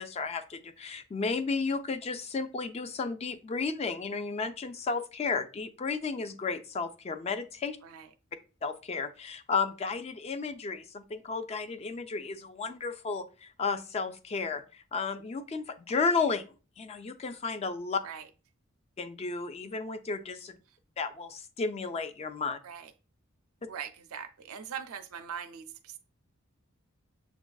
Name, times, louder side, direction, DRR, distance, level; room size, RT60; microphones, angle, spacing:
voice 1, 0.0-7.8 8.6-16.4 16.8-18.0 19.0-20.5 21.0-22.6, left 4 dB, 30° left, 10 dB, 0.3 m, -33 dB
voice 2, 23.7-26.0, right 8 dB, 90° right, 7 dB, 0.4 m, -41 dB
6.9 x 2.4 x 2.3 m, 0.34 s
head